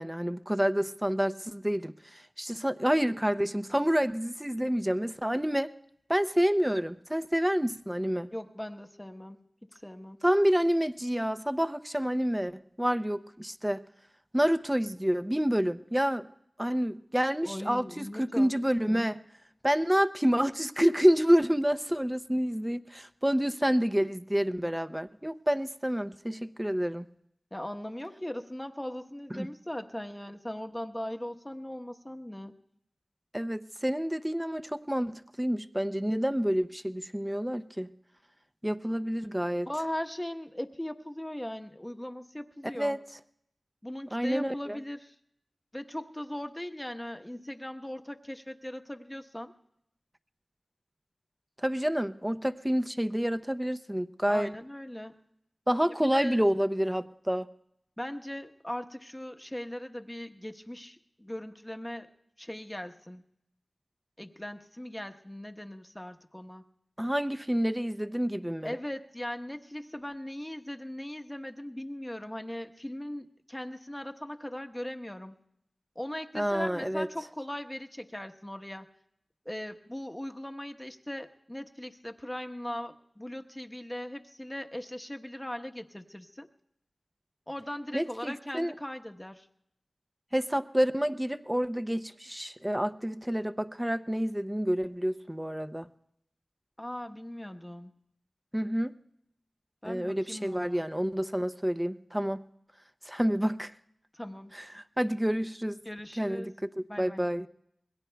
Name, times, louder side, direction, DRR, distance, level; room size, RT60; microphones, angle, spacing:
voice 1, 0.0-5.7 6.1-8.3 10.2-13.8 14.3-16.3 16.6-19.2 19.6-27.1 29.4-29.5 33.3-37.9 38.6-39.7 42.7-43.0 44.1-44.8 51.6-54.5 55.7-57.5 67.0-68.7 76.3-77.1 87.9-88.7 90.3-95.9 98.5-98.9 99.8-102.4 103.1-103.7 104.5-105.8 106.2-107.5, equal, 10° right, 9 dB, 0.6 m, -28 dB
voice 2, 8.3-9.4 9.8-10.2 17.4-18.5 18.8-19.0 27.5-32.6 39.7-43.0 43.8-45.1 45.7-49.5 54.3-55.1 56.0-56.4 58.0-62.1 62.4-63.2 64.2-66.6 68.6-75.4 75.9-78.9 79.4-86.5 87.5-89.5 96.8-97.9 99.8-100.9 104.1-104.5 105.8-106.5 106.9-107.3, left 1 dB, 15° left, 5 dB, 1.0 m, -39 dB
27.5 x 21.5 x 2.3 m, 0.77 s
wide cardioid pair, 45°, 0 cm